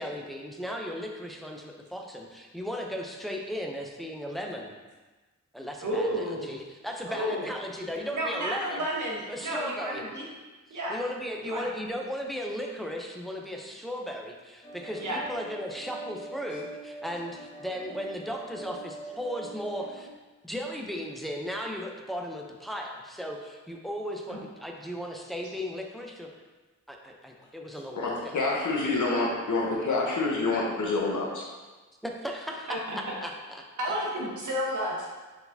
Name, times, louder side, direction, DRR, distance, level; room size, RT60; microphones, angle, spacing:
voice 1, 0.0-4.7 5.5-8.8 9.3-10.0 10.9-20.1 20.4-26.3 26.9-28.4 32.0-33.6 33.9-34.0, equal, ahead, 1 dB, 0.5 m, -36 dB
voice 2, 5.8-6.5 7.1-7.5 8.1-10.2 10.7-11.0 11.4-11.6 15.0-15.2 24.3-24.4 32.7-33.0 33.8-35.1, equal, 85° right, -3 dB, 1.1 m, -31 dB
sound 1, 14.6-20.1, right 3 dB, 55° left, 1.2 m, -43 dB
voice 3, 28.0-31.4, left 3 dB, 85° left, -3 dB, 1.0 m, -27 dB
4.5 x 4.0 x 2.7 m, 1.3 s
wide cardioid pair, 105°, 29 cm